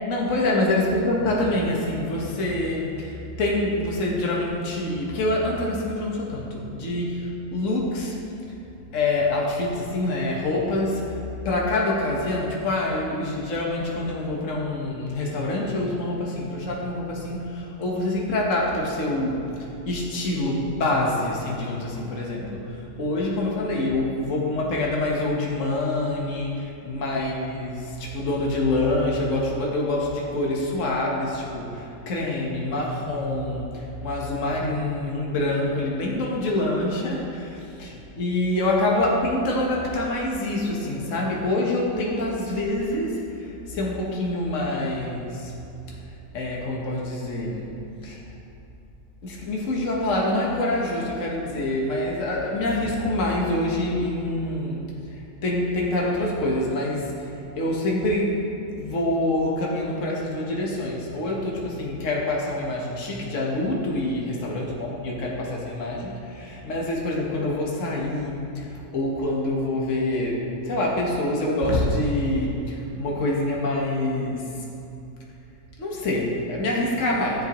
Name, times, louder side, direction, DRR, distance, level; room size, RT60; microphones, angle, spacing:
voice 1, 0.0-8.1 8.9-11.2 11.4-19.5 19.8-45.5 46.3-47.8 48.0-48.2 49.2-74.5 75.8-77.4, left 1 dB, 60° left, -3 dB, 1.6 m, -26 dB
14.0 x 7.6 x 3.0 m, 2.8 s
omnidirectional pair, 1.5 m